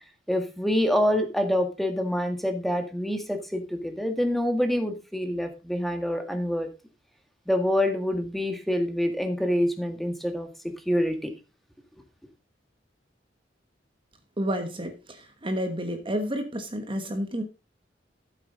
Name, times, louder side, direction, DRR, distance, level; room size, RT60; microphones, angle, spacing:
voice 1, 0.3-6.7 7.5-10.5 10.9-11.3, equal, ahead, 6 dB, 1.8 m, -26 dB
voice 2, 14.4-17.4, equal, 30° right, 6 dB, 1.3 m, -30 dB
13.5 x 8.0 x 3.9 m, 0.29 s
head